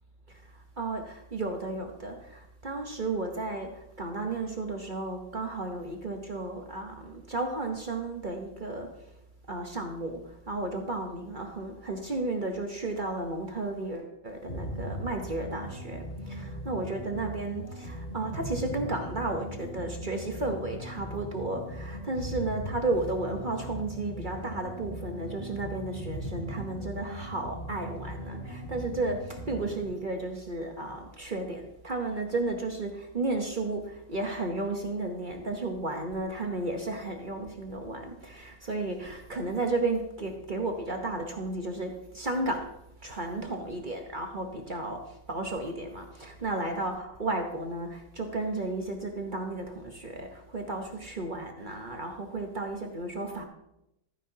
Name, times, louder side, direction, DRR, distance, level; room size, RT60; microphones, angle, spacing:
voice 1, 0.3-9.1 9.5-42.7 43.0-53.4, right 2 dB, 35° right, 3 dB, 0.8 m, -33 dB
sound 1, 14.5-29.8, equal, 40° left, 2.4 m, -39 dB
14.0 x 9.7 x 2.8 m, 0.85 s
omnidirectional pair, 1.9 m